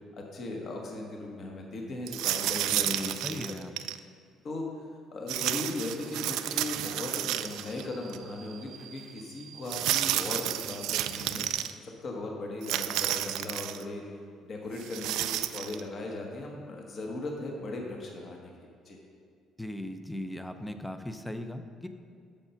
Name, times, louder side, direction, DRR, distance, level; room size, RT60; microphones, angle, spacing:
voice 1, 0.2-3.6 4.4-4.6 5.1-11.5 11.8-14.0 14.4-19.0, left 2 dB, 40° left, 0 dB, 1.1 m, -38 dB
sound 1, 2.1-4.0 5.3-7.8 8.1-8.2 9.7-11.7 12.6-13.8 14.8-15.8, right 13 dB, 85° right, 0.3 m, -31 dB
voice 2, 2.7-3.7 19.6-21.9, left 1 dB, 5° left, 8 dB, 0.5 m, -38 dB
Subway metro underground, 5.4-11.5, right 9 dB, 65° right, 0.7 m, -51 dB
7.1 x 6.8 x 5.7 m, 2.2 s
cardioid pair, 135°, 0 cm